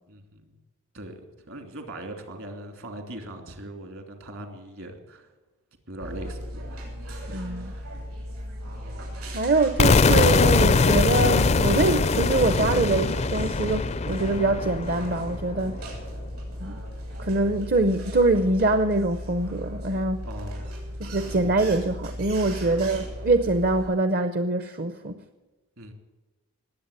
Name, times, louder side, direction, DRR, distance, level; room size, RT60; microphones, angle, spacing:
voice 1, 0.1-0.6 0.9-1.2 1.5-5.3 5.9-6.9 7.3-7.9 20.2-20.7 21.2-21.6 25.8-25.9, right 1 dB, 65° right, 6 dB, 2.8 m, -41 dB
sound 1, 6.0-23.9, equal, 80° right, 6.9 m, -36 dB
voice 2, 7.3-7.7 9.3-15.8 16.6-16.8 17.2-20.2 21.0-25.2, right 2 dB, 45° right, 10 dB, 0.7 m, -24 dB
sound 2, 9.8-15.7, left 4 dB, 30° left, 0.4 m, -22 dB
20.5 x 8.3 x 8.2 m, 1.2 s
head